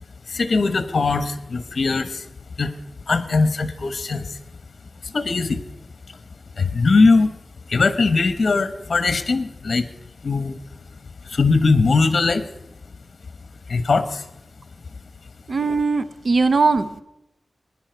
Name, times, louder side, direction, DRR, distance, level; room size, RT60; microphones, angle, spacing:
voice 1, 0.3-2.2 2.6-2.7 3.1-4.4 5.0-5.6 6.6-7.3 7.7-9.9 10.2-10.6 11.3-12.5 13.7-14.2, left 3 dB, 65° left, 12 dB, 1.0 m, -20 dB
voice 2, 15.5-17.0, right 4 dB, 60° right, 12 dB, 0.7 m, -20 dB
21.0 x 10.0 x 4.5 m, 0.88 s
wide cardioid pair, 90°, 0 cm